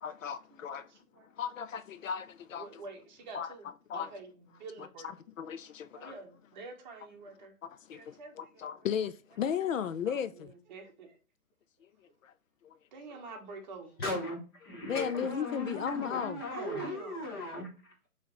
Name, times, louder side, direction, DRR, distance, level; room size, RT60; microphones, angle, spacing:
voice 1, 0.0-0.9 1.4-2.8 3.3-3.5 3.9-4.1 5.4-6.1 7.6-10.5 12.2-12.3 12.6-12.8 14.8-16.4, left 8 dB, 60° left, 0.5 m, -35 dB
voice 2, 0.5-1.3 2.6-5.1 5.9-7.5 7.9-8.9 10.0-11.2 12.9-14.0 16.5-17.2, right 4 dB, 30° right, 1.1 m, -46 dB
voice 3, 14.0-18.1, left 2 dB, 15° left, 0.7 m, -38 dB
5.6 x 3.1 x 3.0 m
hypercardioid pair, 150°, 44 cm